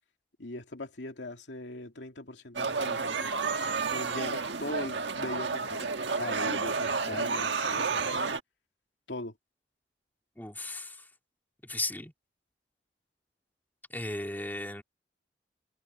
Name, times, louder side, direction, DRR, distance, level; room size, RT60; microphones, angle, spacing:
voice 1, 0.4-3.3 3.9-8.2 9.1-9.3, left 2 dB, 90° left, 2.6 m, -40 dB
sound 1, 2.6-8.4, right 4 dB, 85° right, 1.5 m, -31 dB
voice 2, 10.4-11.1 11.6-12.1 13.9-14.8, left 2 dB, 10° left, 2.4 m, -36 dB
head